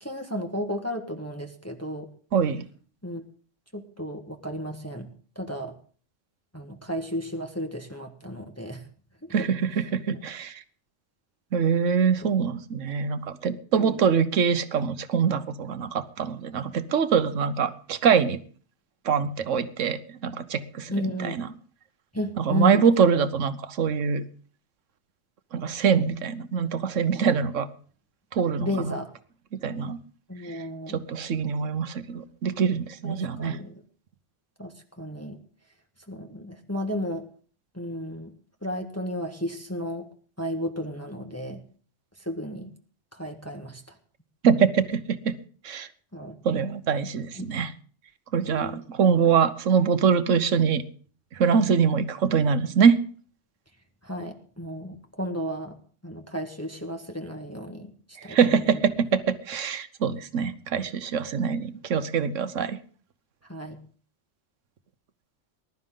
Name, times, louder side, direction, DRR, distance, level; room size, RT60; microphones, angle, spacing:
voice 1, 0.0-2.1 3.0-3.2 3.7-5.1 5.3-5.7 6.5-8.8 9.2-9.3 10.1-10.2 12.2-12.3 13.8-14.0 20.9-21.4 22.1-22.8 28.6-29.1 30.3-31.0 33.0-33.7 34.6-34.7 35.0-35.4 36.1-37.3 37.7-38.3 38.6-40.1 40.4-41.6 42.2-42.7 43.1-43.8 46.1-46.3 47.4-47.5 48.4-48.8 54.0-55.7 56.0-57.9 58.2-58.6 63.5-63.8, left 1 dB, 15° left, 3 dB, 1.4 m, -33 dB
voice 2, 2.3-2.6 9.3-10.6 11.5-18.4 19.0-21.5 22.4-24.2 25.5-27.7 28.3-28.9 29.5-30.0 30.5-33.6 44.4-45.4 45.6-45.9 46.4-47.7 48.3-50.8 51.3-53.0 58.3-62.8, right 6 dB, 90° right, 12 dB, 1.3 m, -24 dB
20.0 x 12.0 x 3.8 m, 0.43 s
omnidirectional pair, 1.2 m